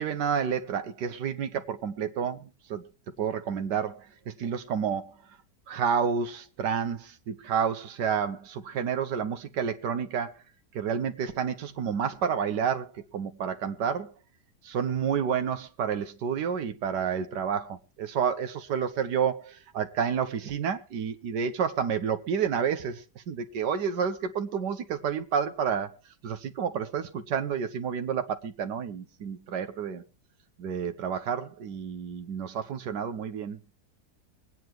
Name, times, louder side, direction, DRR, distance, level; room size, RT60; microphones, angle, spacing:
voice 1, 0.0-2.8 3.2-5.1 5.7-10.3 10.7-14.1 14.6-25.9 26.2-30.0 30.6-33.6, right 7 dB, 85° right, 1.6 m, -30 dB
24.5 x 9.2 x 3.0 m
omnidirectional pair, 1.8 m